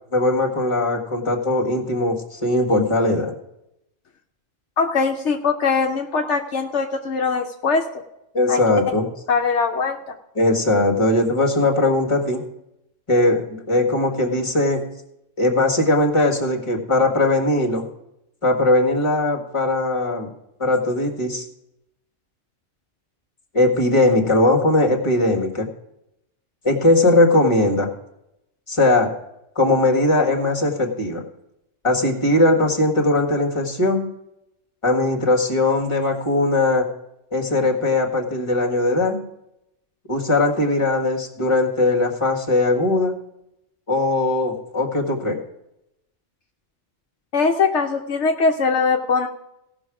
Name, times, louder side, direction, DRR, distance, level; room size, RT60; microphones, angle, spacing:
voice 1, 0.1-3.3 8.3-9.1 10.3-12.4 13.1-14.8 15.4-17.8 18.4-20.3 20.6-21.4 23.5-25.7 26.6-27.9 28.7-29.1 29.5-31.2 31.8-34.1 34.8-36.9 37.3-39.2 40.1-43.1 43.9-45.4, left 2 dB, 25° left, 1 dB, 1.7 m, -19 dB
voice 2, 4.8-7.8 8.5-8.6 9.3-10.1 47.3-49.3, left 4 dB, 70° left, 3 dB, 1.1 m, -21 dB
17.0 x 6.2 x 4.9 m, 0.85 s
omnidirectional pair, 1.3 m